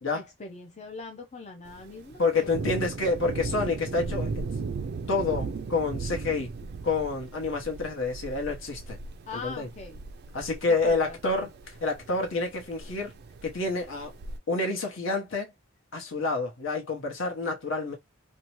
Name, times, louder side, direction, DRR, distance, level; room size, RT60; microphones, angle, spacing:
voice 1, 0.1-2.9 9.3-10.0 10.7-11.3, left 3 dB, 35° left, 0.4 m, -42 dB
Thunder, 1.7-14.4, right 4 dB, 55° right, 0.3 m, -37 dB
voice 2, 2.2-4.4 5.1-6.5 6.8-9.0 9.3-9.7 10.3-11.5 11.8-13.1 13.4-14.1 14.5-15.5 15.9-18.0, left 3 dB, 70° left, 1.0 m, -28 dB
2.7 x 2.1 x 2.9 m
head